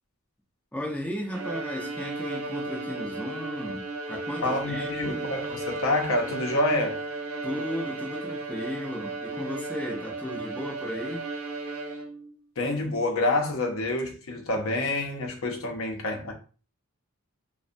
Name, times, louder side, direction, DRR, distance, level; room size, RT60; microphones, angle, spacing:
voice 1, 0.7-5.2 7.4-11.3, left 1 dB, 5° left, 0.4 m, -35 dB
Bowed string instrument, 1.3-12.3, right 2 dB, 85° right, 0.5 m, -35 dB
voice 2, 4.4-7.0 12.6-16.3, left 2 dB, 75° left, 0.6 m, -27 dB
2.6 x 2.1 x 2.5 m
head